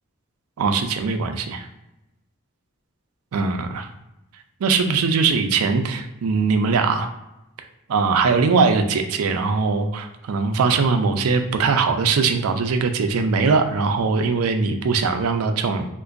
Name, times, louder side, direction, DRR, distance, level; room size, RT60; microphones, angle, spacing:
voice 1, 0.6-1.7 3.3-3.9 4.6-7.1 7.9-15.9, right 4 dB, 85° right, 7 dB, 0.4 m, -21 dB
3.7 x 2.5 x 2.4 m, 0.93 s
head